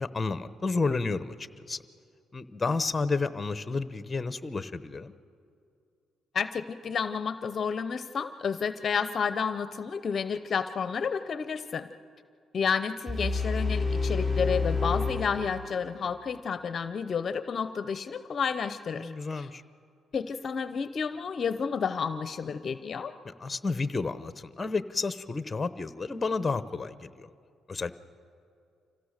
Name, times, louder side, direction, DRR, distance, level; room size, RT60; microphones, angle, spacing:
voice 1, 0.0-1.8 2.3-5.1 19.0-19.6 23.2-27.3 27.7-27.9, left 3 dB, 25° left, 13 dB, 0.9 m, -31 dB
voice 2, 6.3-11.9 12.5-19.5 20.1-23.1, left 6 dB, 50° left, 12 dB, 0.6 m, -31 dB
sound 1, 13.1-16.1, left 4 dB, 20° right, 4.1 m, -29 dB
26.0 x 16.5 x 6.6 m, 2.5 s
cardioid pair, 90°, 0 cm